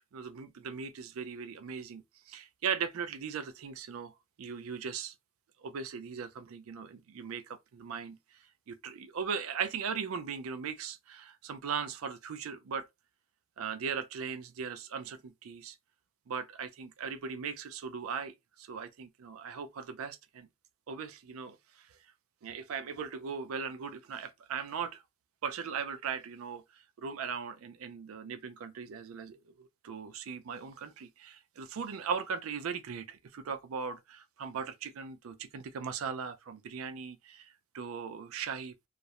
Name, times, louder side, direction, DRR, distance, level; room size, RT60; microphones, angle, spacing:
voice 1, 0.0-4.1 4.4-5.1 5.6-8.2 8.7-12.9 13.6-15.8 16.3-20.5 20.9-21.9 22.4-25.0 25.4-26.6 27.0-38.9, right 6 dB, 80° right, 0.4 m, -39 dB
2.4 x 2.0 x 2.8 m
head